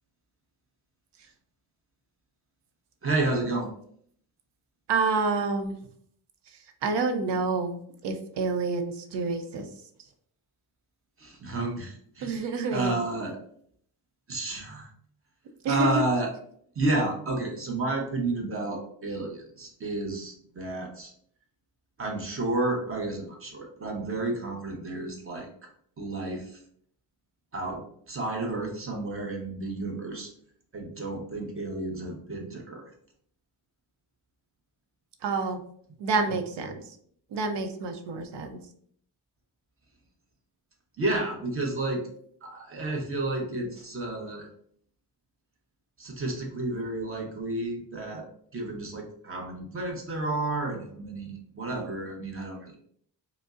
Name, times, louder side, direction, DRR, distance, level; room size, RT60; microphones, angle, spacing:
voice 1, 3.0-3.7 11.2-13.4 14.3-14.9 15.7-16.3 16.7-21.1 22.0-25.7 26.0-26.6 27.5-30.3 30.7-32.9 41.0-42.1 42.4-44.5 46.0-48.3 48.5-52.8, right 2 dB, 35° right, 1 dB, 0.7 m, -31 dB
voice 2, 4.9-5.8 6.8-9.7 12.2-13.0 15.6-16.0 35.2-35.6 36.0-36.8 37.3-38.6, right 3 dB, 85° right, 6 dB, 0.6 m, -28 dB
4.9 x 2.0 x 2.4 m, 0.64 s
wide cardioid pair, 145°, 41 cm